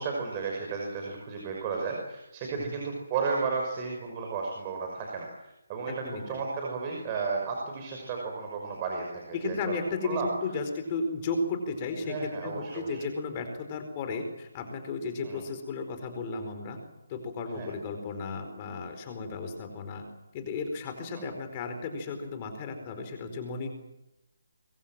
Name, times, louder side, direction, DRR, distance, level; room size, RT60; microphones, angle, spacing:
voice 1, 0.0-9.8 10.0-10.3 12.0-13.0 15.2-15.4 17.5-17.7, right 5 dB, 25° right, 0 dB, 5.7 m, -33 dB
voice 2, 5.9-6.4 9.3-16.8 17.1-20.0 20.3-23.7, left 3 dB, 30° left, 6 dB, 4.7 m, -34 dB
25.0 x 23.5 x 7.6 m, 0.92 s
figure-of-eight pair, 155°, 0 cm